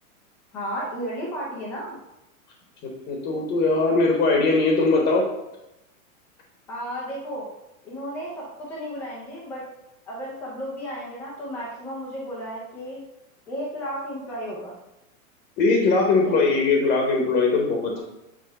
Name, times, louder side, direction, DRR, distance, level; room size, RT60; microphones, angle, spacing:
voice 1, 0.5-2.0 6.7-7.5 7.8-9.7 10.1-13.0 13.5-14.7 16.3-16.4, equal, 5° left, -5 dB, 0.3 m, -33 dB
voice 2, 2.8-5.3 15.6-18.0, left 3 dB, 20° left, 1 dB, 0.9 m, -21 dB
7.9 x 3.2 x 5.2 m, 0.91 s
supercardioid pair, 165°, 42 cm